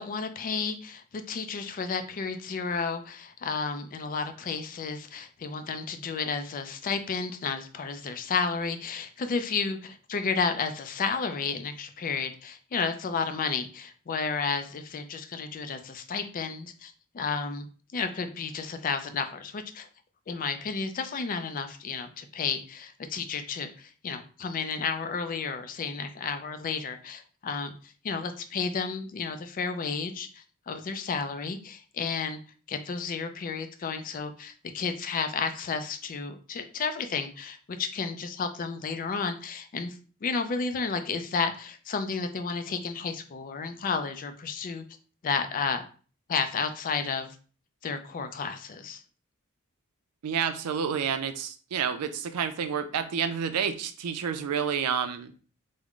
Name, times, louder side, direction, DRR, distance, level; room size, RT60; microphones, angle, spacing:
voice 1, 0.0-17.7 17.9-19.9 20.3-32.4 32.7-44.8 45.2-45.8 46.3-47.4 47.8-49.0, left 5 dB, 40° left, 9 dB, 0.3 m, -32 dB
voice 2, 50.2-55.3, right 7 dB, 90° right, 10 dB, 0.4 m, -29 dB
3.5 x 2.0 x 3.6 m, 0.39 s
head